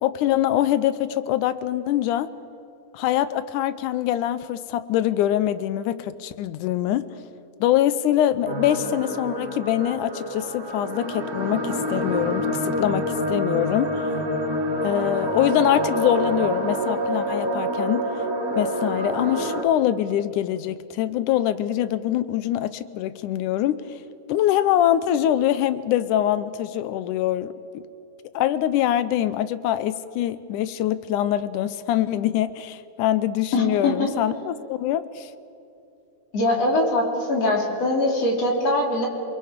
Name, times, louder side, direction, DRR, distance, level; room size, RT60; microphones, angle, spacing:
voice 1, 0.0-2.3 2.9-7.1 7.6-13.9 14.8-18.1 18.6-24.0 24.3-27.8 28.3-35.3, left 12 dB, 85° left, 14 dB, 2.2 m, -24 dB
sound 1, 8.4-19.6, equal, 35° right, 2.1 m, -27 dB
voice 2, 33.5-34.1 36.3-39.1, left 1 dB, 55° left, 0 dB, 4.3 m, -22 dB
28.0 x 21.5 x 5.1 m, 2.8 s
omnidirectional pair, 3.5 m